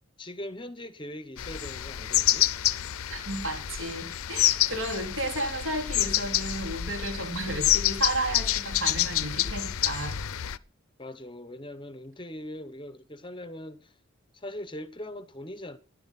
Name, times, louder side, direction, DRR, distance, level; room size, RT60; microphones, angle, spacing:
voice 1, 0.2-2.5 11.0-13.9 14.3-15.8, left 1 dB, 20° left, 0.8 m, -41 dB
sound 1, 1.4-10.6, left 13 dB, 75° left, 0.6 m, -28 dB
voice 2, 3.1-10.2, right 2 dB, 65° right, 3.6 m, -33 dB
13.0 x 10.5 x 5.8 m
head